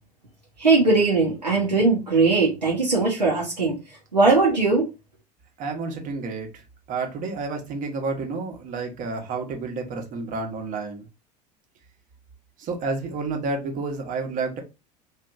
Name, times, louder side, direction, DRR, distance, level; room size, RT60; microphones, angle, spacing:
voice 1, 0.6-3.8 4.1-4.9, right 3 dB, 85° right, -5 dB, 0.7 m, -19 dB
voice 2, 5.6-6.5 6.9-11.1 12.6-14.6, right 4 dB, 40° right, 3 dB, 0.9 m, -30 dB
2.9 x 2.5 x 2.4 m, 0.27 s
figure-of-eight pair, 70°, 21 cm